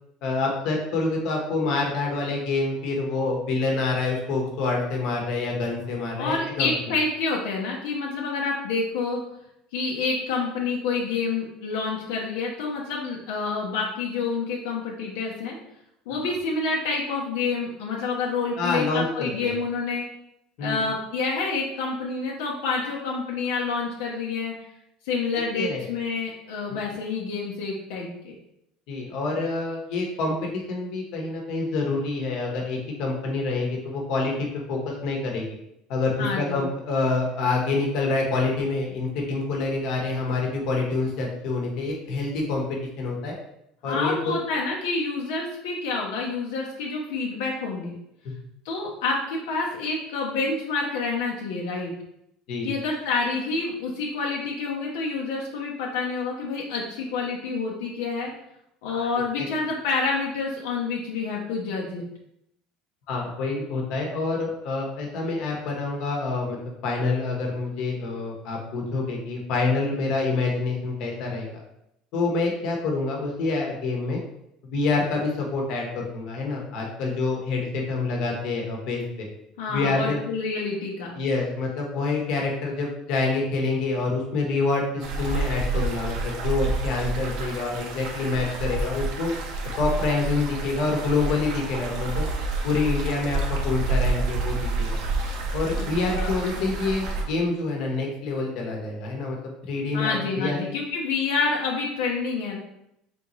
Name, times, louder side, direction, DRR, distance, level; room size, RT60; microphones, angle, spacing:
voice 1, 0.2-6.7 18.6-19.5 20.6-20.8 25.3-25.8 26.7-26.8 28.9-35.4 35.9-43.3 43.8-44.4 52.5-52.7 58.9-59.1 59.3-59.5 63.1-71.6 72.1-74.2 74.7-79.3 79.7-80.2 81.1-89.3 89.8-92.3 92.6-95.0 95.5-100.6, left 3 dB, 55° left, 0 dB, 1.0 m, -27 dB
voice 2, 6.2-9.2 9.7-15.6 16.1-20.0 20.6-24.5 25.0-28.3 36.2-36.6 43.8-48.0 48.6-51.9 52.6-58.3 58.8-62.0 79.6-81.2 95.8-95.9 96.1-96.7 99.9-102.6, left 4 dB, 85° left, -2 dB, 0.7 m, -28 dB
sound 1, 85.0-97.2, right 3 dB, 60° right, 0.7 m, -28 dB
3.9 x 3.4 x 3.1 m, 0.80 s
cardioid pair, 155°, 0 cm